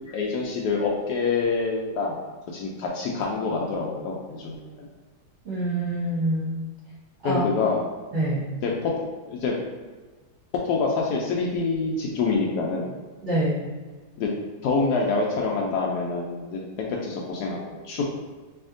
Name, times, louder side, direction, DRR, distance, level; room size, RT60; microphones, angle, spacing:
voice 1, 0.1-2.2 2.5-4.9 7.2-7.9 8.6-9.0 9.3-9.5 10.6-12.9 14.2-14.3 14.6-18.0, left 4 dB, 85° left, -1 dB, 0.8 m, -26 dB
voice 2, 5.4-6.6 7.2-7.4 8.1-8.5 13.2-13.7, right 1 dB, 45° right, -10 dB, 1.0 m, -25 dB
3.4 x 2.8 x 3.6 m, 1.4 s
omnidirectional pair, 2.3 m